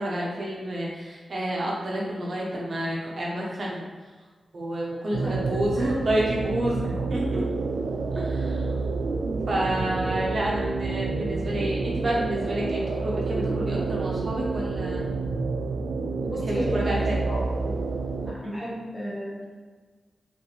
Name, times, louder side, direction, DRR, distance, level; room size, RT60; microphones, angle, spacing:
voice 1, 0.0-3.8 4.5-7.4 8.1-8.9 9.5-15.1 16.5-17.2 18.4-18.5, right 1 dB, 55° right, -4 dB, 0.8 m, -29 dB
sound 1, 5.1-18.3, right 3 dB, 85° right, 0.3 m, -28 dB
voice 2, 5.2-5.9 16.2-17.8 18.2-19.4, equal, 15° left, -7 dB, 1.5 m, -34 dB
5.3 x 2.5 x 3.2 m, 1.4 s
wide cardioid pair, 120°, 0 cm